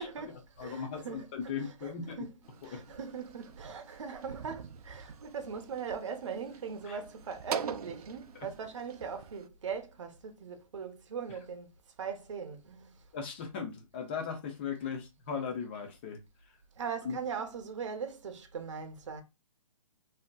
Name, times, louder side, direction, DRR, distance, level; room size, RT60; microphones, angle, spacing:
voice 1, 0.0-1.3 1.6-2.3 2.6-11.7 12.0-13.0 16.8-19.2, right 6 dB, 55° right, 0.8 m, -40 dB
voice 2, 0.6-2.3 2.7-2.8 6.8-7.0 13.1-16.2 17.0-17.2, left 6 dB, 20° left, 0.5 m, -37 dB
sound 1, 2.4-9.5, right 7 dB, 85° right, 0.5 m, -43 dB
3.5 x 2.7 x 2.2 m
hypercardioid pair, 165°, 19 cm